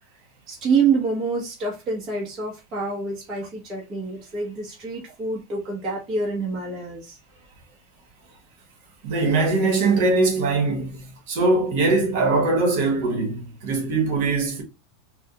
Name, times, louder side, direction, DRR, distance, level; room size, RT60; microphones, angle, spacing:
voice 1, 0.5-7.2, right 4 dB, 30° right, 0.9 m, -26 dB
voice 2, 9.0-14.6, right 3 dB, 55° right, 1.2 m, -21 dB
3.4 x 2.2 x 2.8 m
supercardioid pair, 165°, 0 cm